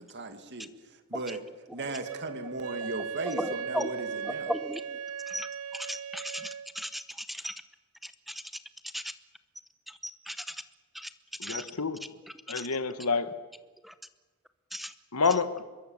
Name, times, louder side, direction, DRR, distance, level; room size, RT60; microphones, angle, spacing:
voice 1, 0.0-1.4 1.7-4.5, right 2 dB, 50° right, 2.2 m, -37 dB
Wind instrument woodwind instrument, 2.0-6.7, right 6 dB, 80° right, 1.0 m, -37 dB
voice 2, 3.3-3.9 4.5-4.8 5.3-5.5 5.7-7.0 7.3-7.5 8.3-8.4 8.9-9.0 10.0-10.6 10.9-11.1 11.4-11.6 12.5-12.7 13.8-13.9 14.7-14.9, equal, ahead, 0.8 m, -36 dB
voice 3, 11.4-12.0 12.5-13.3 15.1-15.6, left 4 dB, 85° left, 1.4 m, -28 dB
25.5 x 22.5 x 7.3 m
head